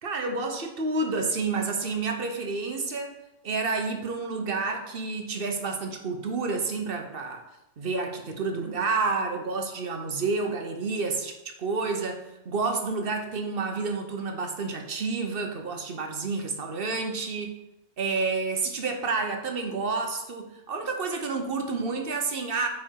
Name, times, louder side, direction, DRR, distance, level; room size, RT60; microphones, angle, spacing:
voice 1, 0.0-3.1 3.4-7.4 7.8-17.5 18.0-22.7, right 4 dB, 50° right, 4 dB, 1.0 m, -29 dB
6.8 x 4.8 x 4.6 m, 0.89 s
omnidirectional pair, 1.3 m